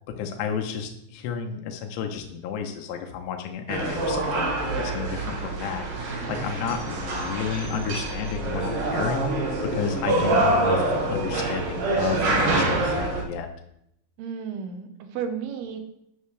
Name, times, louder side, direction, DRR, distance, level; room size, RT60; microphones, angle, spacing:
voice 1, 0.2-13.5, left 6 dB, 85° left, 3 dB, 3.0 m, -32 dB
sound 1, 3.7-13.2, right 2 dB, 60° right, 2.9 m, -26 dB
voice 2, 14.2-15.8, right 7 dB, 75° right, 6 dB, 2.9 m, -33 dB
11.0 x 9.5 x 3.3 m, 0.76 s
omnidirectional pair, 4.8 m